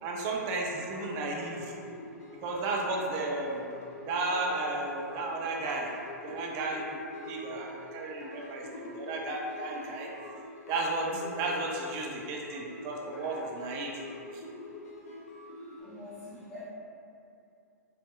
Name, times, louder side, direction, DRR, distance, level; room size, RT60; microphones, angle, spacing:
voice 1, 0.0-1.7 2.3-3.7 4.0-5.9 6.2-6.9 7.2-10.1 10.7-13.9 14.3-14.4, right 2 dB, 35° right, -1 dB, 0.4 m, -33 dB
sound 1, 0.8-15.8, left 2 dB, 65° left, 0.5 m, -45 dB
voice 2, 11.0-11.4 15.8-16.6, left 2 dB, 35° left, -14 dB, 0.9 m, -45 dB
2.6 x 2.1 x 2.3 m, 2.5 s
figure-of-eight pair, 110°, 9 cm